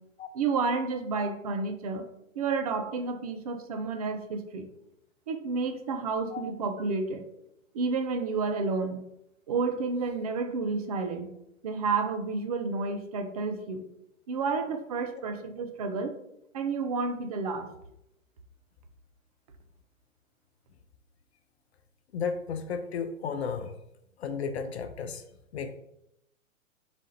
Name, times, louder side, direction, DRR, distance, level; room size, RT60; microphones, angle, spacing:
voice 1, 0.3-2.0 2.4-4.7 5.3-7.3 7.7-9.0 9.5-11.3 11.6-13.8 14.3-16.2 16.5-17.7, right 4 dB, 30° right, 7 dB, 0.4 m, -30 dB
voice 2, 22.1-23.8 24.2-25.3 25.5-25.8, left 6 dB, 55° left, 8 dB, 0.5 m, -33 dB
4.0 x 2.4 x 4.1 m, 0.81 s
figure-of-eight pair, 120°, 40 cm